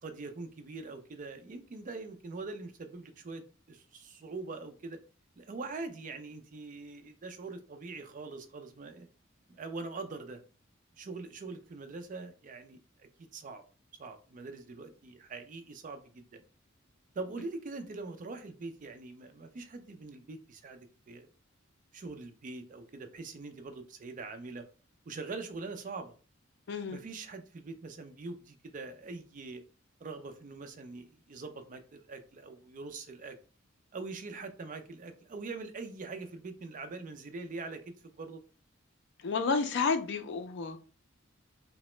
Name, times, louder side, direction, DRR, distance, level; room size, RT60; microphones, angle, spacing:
voice 1, 0.0-5.0 5.4-9.1 9.5-10.4 11.0-13.6 14.0-16.4 17.1-21.3 21.9-24.7 25.1-26.2 26.9-29.6 30.0-33.4 33.9-38.4, right 3 dB, 40° right, 0.4 m, -43 dB
voice 2, 26.7-27.0 39.2-40.8, left 4 dB, 60° left, 0.4 m, -30 dB
2.8 x 2.1 x 3.1 m
head